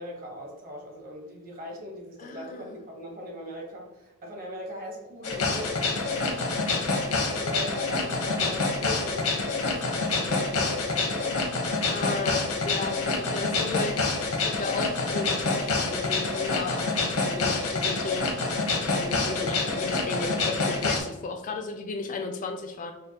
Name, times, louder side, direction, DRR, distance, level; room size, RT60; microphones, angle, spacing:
voice 1, 0.0-6.6 7.2-11.4, equal, 40° right, 0 dB, 1.0 m, -40 dB
voice 2, 2.2-2.8 11.8-18.6 18.9-22.9, left 4 dB, 35° left, 5 dB, 0.3 m, -34 dB
sound 1, 5.2-21.0, left 3 dB, 85° left, 0.9 m, -27 dB
5.1 x 2.1 x 2.8 m, 1.1 s
head